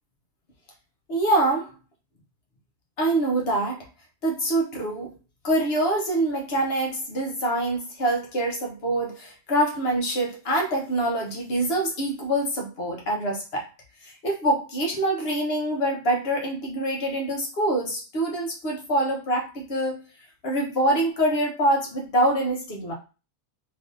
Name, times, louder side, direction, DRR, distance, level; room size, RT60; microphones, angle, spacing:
voice 1, 1.1-1.7 3.0-3.9 4.2-5.1 5.4-13.7 14.0-20.0 20.4-22.9, right 1 dB, 45° left, 0 dB, 1.1 m, -25 dB
3.5 x 3.1 x 2.6 m, 0.32 s
omnidirectional pair, 1.6 m